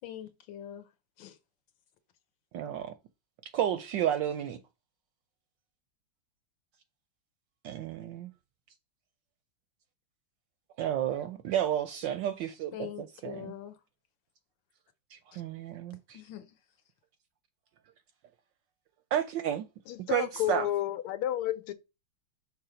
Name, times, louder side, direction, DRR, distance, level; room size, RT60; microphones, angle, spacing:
voice 1, 0.0-0.8 1.2-1.4 12.7-13.7 15.3-15.4 16.1-16.5, left 11 dB, 65° left, 1.5 m, -43 dB
voice 2, 2.5-2.9 3.5-4.6 7.6-8.3 10.8-13.5 15.1-16.2 19.1-19.7 20.1-20.7, right 10 dB, 75° right, 1.1 m, -31 dB
voice 3, 19.9-21.7, left 13 dB, 85° left, 1.6 m, -31 dB
5.9 x 3.3 x 4.9 m
omnidirectional pair, 2.4 m